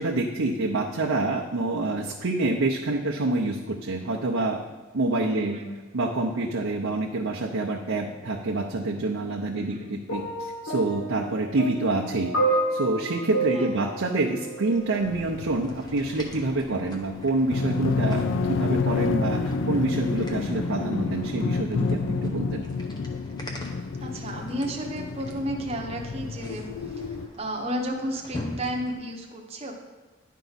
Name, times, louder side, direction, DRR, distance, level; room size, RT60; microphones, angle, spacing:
voice 1, 0.0-4.6 4.9-5.5 5.9-12.3 12.7-22.6, right 2 dB, 80° right, -2 dB, 0.7 m, -27 dB
voice 2, 5.3-5.8 9.6-9.9 13.5-13.9 24.0-29.7, equal, 30° right, 1 dB, 0.8 m, -33 dB
sound 1, 10.1-15.2 16.1-16.3, right 2 dB, 85° left, 1.6 m, -30 dB
sound 2, 14.7-29.0, left 1 dB, 20° left, 0.8 m, -45 dB
sound 3, 15.0-27.3, left 4 dB, 70° left, 0.4 m, -29 dB
10.5 x 4.6 x 4.0 m, 1.3 s
head